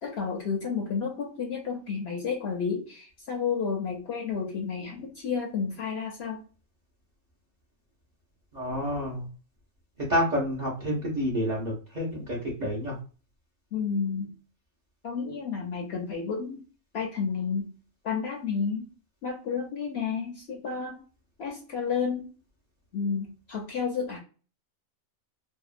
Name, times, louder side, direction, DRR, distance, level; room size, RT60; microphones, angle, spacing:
voice 1, 0.0-6.4 13.7-14.3 15.0-16.6 16.9-17.7 18.0-18.9 19.2-21.0 21.4-22.3 22.9-24.2, left 6 dB, 60° left, 1 dB, 0.7 m, -31 dB
voice 2, 8.5-9.3 10.1-13.0, equal, 45° right, -3 dB, 0.6 m, -29 dB
2.7 x 2.2 x 2.4 m, 0.37 s
omnidirectional pair, 1.5 m